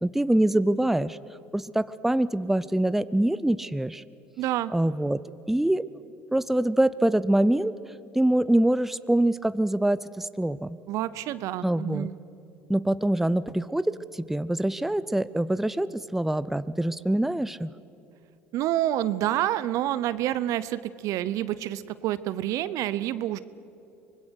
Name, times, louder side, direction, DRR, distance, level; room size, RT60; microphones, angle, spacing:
voice 1, 0.0-1.2 1.5-4.0 4.7-5.2 5.5-5.8 6.3-7.7 8.1-10.8 11.6-12.1 12.7-17.7, right 1 dB, 5° right, 16 dB, 0.6 m, -24 dB
voice 2, 4.4-4.7 10.9-12.2 18.5-23.4, right 13 dB, 65° right, 16 dB, 0.8 m, -28 dB
24.5 x 20.5 x 6.5 m, 2.6 s
hypercardioid pair, 70°, 6 cm